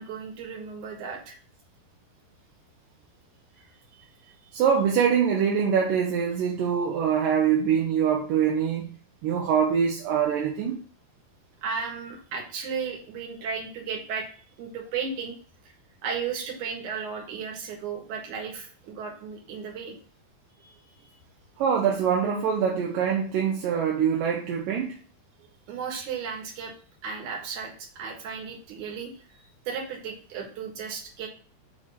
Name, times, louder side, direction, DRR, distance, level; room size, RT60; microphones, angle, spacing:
voice 1, 0.0-1.4 3.9-4.5 11.6-14.3 14.6-15.4 16.0-19.9 20.6-21.1 25.7-26.7 27.0-31.3, right 6 dB, 60° right, 0 dB, 2.6 m, -35 dB
voice 2, 4.5-9.0 9.2-10.8 21.6-25.0, right 7 dB, 75° right, 0 dB, 2.1 m, -24 dB
6.6 x 3.5 x 5.5 m, 0.41 s
omnidirectional pair, 4.5 m